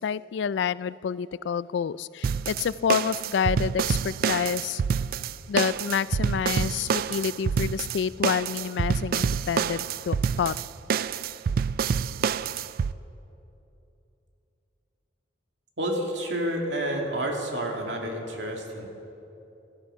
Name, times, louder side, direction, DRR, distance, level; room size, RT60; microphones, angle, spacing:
voice 1, 0.0-4.8 5.5-10.5, left 7 dB, 70° left, 19 dB, 0.3 m, -28 dB
sound 1, 2.2-12.9, right 6 dB, 55° right, 0.3 m, -27 dB
voice 2, 15.8-18.9, right 1 dB, 75° right, 1 dB, 2.3 m, -29 dB
17.0 x 13.5 x 5.6 m, 2.9 s
head